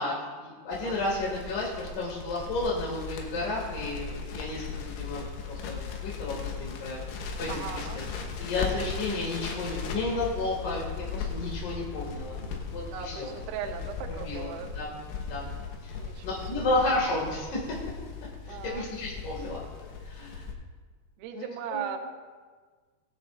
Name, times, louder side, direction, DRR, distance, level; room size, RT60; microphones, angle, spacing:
voice 1, 0.0-7.0 7.4-8.0 8.4-12.4 12.7-13.3 14.2-14.9 15.3-15.5 15.8-16.0 16.2-17.7 18.5-20.5 21.3-21.9, left 2 dB, 50° left, -4 dB, 3.0 m, -32 dB
Crackle, 0.7-20.5, left 5 dB, 85° left, 3.7 m, -38 dB
voice 2, 7.5-8.0 12.9-14.7 16.0-16.4 16.6-16.7 18.4-18.9 21.2-22.0, right 8 dB, 85° right, 3 dB, 2.2 m, -38 dB
20.5 x 11.0 x 2.5 m, 1.5 s
omnidirectional pair, 5.6 m